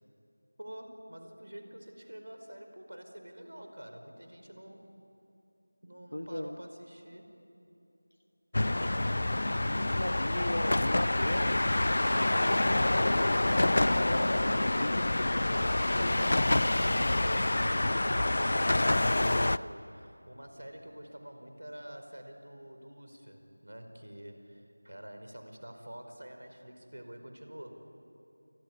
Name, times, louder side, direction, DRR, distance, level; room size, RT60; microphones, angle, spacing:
voice 1, 0.6-4.8 5.8-7.3 18.1-27.8, right 1 dB, 85° right, 6 dB, 5.1 m, -47 dB
voice 2, 6.1-6.6 9.5-12.3 12.8-17.2, left 1 dB, 75° left, 7 dB, 1.2 m, -39 dB
sound 1, 8.5-19.6, left 1 dB, 40° left, 0.5 m, -27 dB
28.0 x 21.0 x 9.8 m, 3.0 s
figure-of-eight pair, 180°, 0 cm